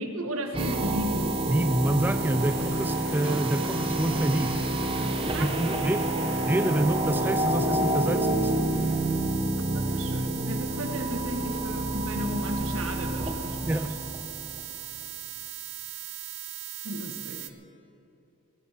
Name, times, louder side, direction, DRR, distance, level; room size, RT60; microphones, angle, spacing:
voice 1, 0.0-1.3 5.3-5.5 5.8-5.9 9.7-13.8 16.8-17.5, equal, 75° right, 5 dB, 1.6 m, -34 dB
sound 1, 0.5-14.6, right 1 dB, 25° right, 0.9 m, -28 dB
sound 2, 0.6-17.5, right 13 dB, 55° right, 0.8 m, -39 dB
voice 2, 1.5-4.6 5.4-6.0 6.5-8.5 13.7-13.9, right 1 dB, 10° right, 8 dB, 0.3 m, -27 dB
Applause, 1.9-9.4, left 1 dB, 35° left, 4.7 m, -45 dB
18.0 x 14.0 x 5.1 m, 2.9 s
head